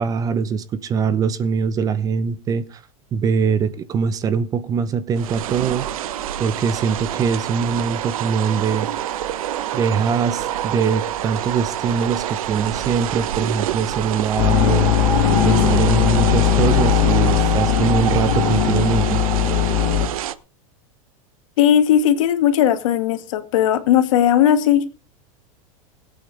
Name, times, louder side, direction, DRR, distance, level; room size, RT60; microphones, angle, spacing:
voice 1, 0.0-2.8 3.1-5.9 6.4-8.9 9.7-14.9 15.4-19.2, right 6 dB, 20° right, 0.8 m, -22 dB
sound 1, 5.2-20.3, right 11 dB, 85° right, 1.1 m, -26 dB
sound 2, 14.4-20.1, left 13 dB, 90° left, 2.4 m, -18 dB
voice 2, 21.6-24.8, left 10 dB, 70° left, 2.3 m, -17 dB
20.5 x 8.7 x 3.5 m
supercardioid pair, 160°, 17 cm